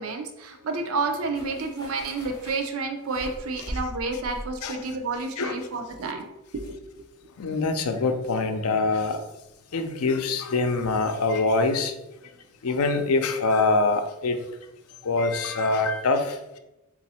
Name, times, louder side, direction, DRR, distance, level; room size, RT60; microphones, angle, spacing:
voice 1, 0.0-6.3 6.5-6.8, right 3 dB, 75° right, 0.5 m, -30 dB
sound 1, 1.3-6.7 7.0-7.1, equal, 20° left, 1.0 m, -41 dB
voice 2, 7.4-9.2 9.7-11.9 12.6-14.4 15.0-16.4, left 3 dB, 85° left, 0.5 m, -24 dB
4.0 x 2.5 x 4.1 m
head